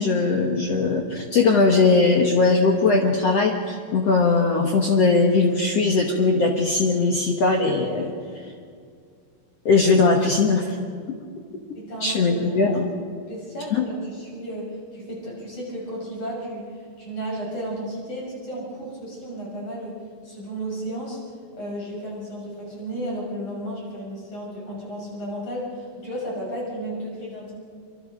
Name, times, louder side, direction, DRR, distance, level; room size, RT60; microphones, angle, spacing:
voice 1, 0.0-8.1 9.6-10.8 12.0-12.9 13.7-13.8, left 3 dB, 90° left, 1 dB, 1.4 m, -20 dB
voice 2, 11.7-12.7 13.3-21.2 21.6-27.5, right 1 dB, 30° left, -3 dB, 7.2 m, -33 dB
25.5 x 24.0 x 5.3 m, 2.2 s
omnidirectional pair, 5.1 m